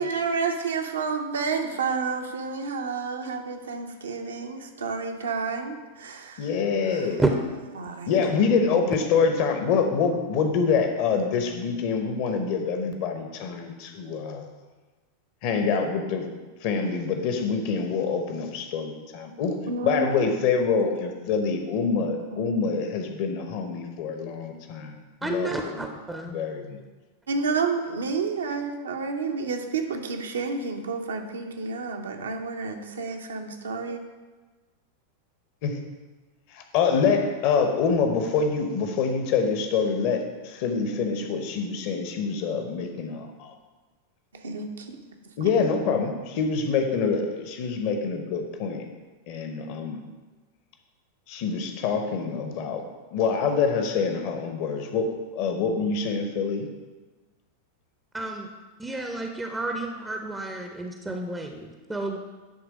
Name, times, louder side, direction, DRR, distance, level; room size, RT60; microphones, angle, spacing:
voice 1, 0.0-6.4 7.8-8.1 8.7-8.8 19.7-20.3 27.3-34.0 44.4-44.8, right 4 dB, 65° right, 4 dB, 0.8 m, -30 dB
voice 2, 6.4-7.2 8.1-14.4 15.4-16.2 16.6-19.6 19.8-25.8 26.2-26.8 35.6-35.8 36.5-43.5 45.4-48.8 49.3-50.0 51.3-52.8 53.1-56.7, left 5 dB, 45° left, 5 dB, 1.0 m, -26 dB
voice 3, 25.2-26.4 58.1-58.5 58.8-62.2, right 2 dB, 10° right, 3 dB, 0.6 m, -30 dB
10.0 x 3.4 x 5.1 m, 1.3 s
figure-of-eight pair, 90°, 0 cm